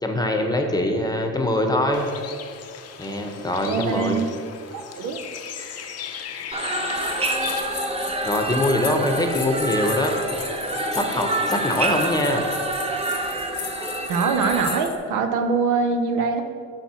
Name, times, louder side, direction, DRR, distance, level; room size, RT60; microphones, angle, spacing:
voice 1, 0.0-2.1 3.0-4.2 8.3-10.4 10.9-12.4, left 1 dB, 15° left, 4 dB, 0.8 m, -23 dB
Bird, 1.9-7.6, left 8 dB, 55° left, 0.6 m, -37 dB
voice 2, 3.4-4.3 5.0-5.2 14.1-16.4, right 5 dB, 85° right, 6 dB, 0.7 m, -23 dB
sound 1, 6.5-14.8, right 2 dB, 20° right, 0.7 m, -27 dB
sound 2, 6.9-15.0, left 7 dB, 80° left, 1.0 m, -36 dB
5.8 x 4.5 x 5.6 m, 2.3 s
cardioid pair, 90°, 30 cm